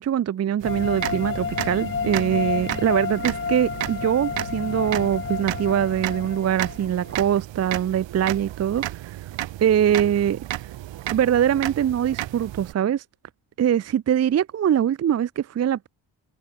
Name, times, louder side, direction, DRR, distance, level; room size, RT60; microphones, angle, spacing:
voice 1, 0.0-9.2 9.6-10.4 11.1-13.0 13.6-15.9, right 9 dB, 35° right, 0.5 m, -23 dB
sound 1, 0.6-7.1, left 6 dB, 30° left, 1.1 m, -30 dB
sound 2, 0.6-12.7, right 14 dB, 85° right, 2.7 m, -33 dB
open air
cardioid pair, 75°, 43 cm